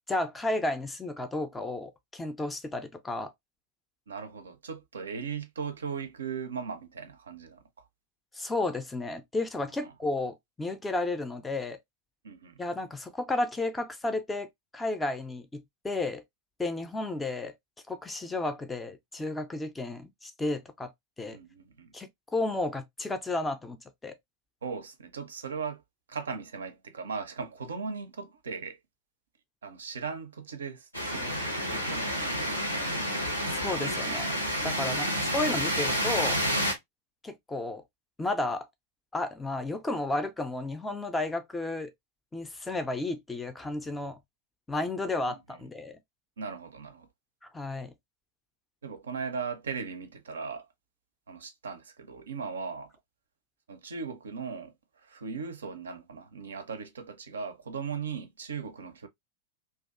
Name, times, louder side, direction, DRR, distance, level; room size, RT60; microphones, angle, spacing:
voice 1, 0.1-3.3 8.3-11.8 12.6-16.2 16.6-17.5 17.9-20.9 21.2-21.4 21.9-24.1 33.5-34.3 34.6-36.4 37.2-37.8 38.2-38.7 39.1-41.9 42.3-44.2 44.7-46.0 47.5-47.9, left 2 dB, 10° left, 0.4 m, -32 dB
voice 2, 4.1-7.6 9.8-9.9 12.2-12.6 21.3-21.9 24.6-25.8 26.1-28.8 29.6-33.1 34.8-35.1 45.3-45.4 46.4-47.1 48.8-50.7 51.3-52.9 53.7-54.7 55.0-59.1, right 5 dB, 70° right, 0.4 m, -38 dB
sound 1, 30.9-36.7, equal, 90° left, 0.8 m, -29 dB
2.5 x 2.2 x 2.3 m
figure-of-eight pair, 90°, 0 cm